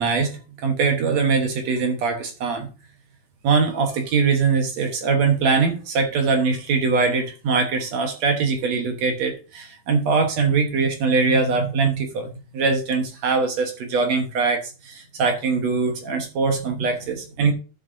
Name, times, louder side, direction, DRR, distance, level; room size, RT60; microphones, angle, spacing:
voice 1, 0.0-2.7 3.4-17.5, right 4 dB, 60° right, 4 dB, 2.2 m, -22 dB
12.0 x 7.8 x 2.7 m, 0.32 s
omnidirectional pair, 4.1 m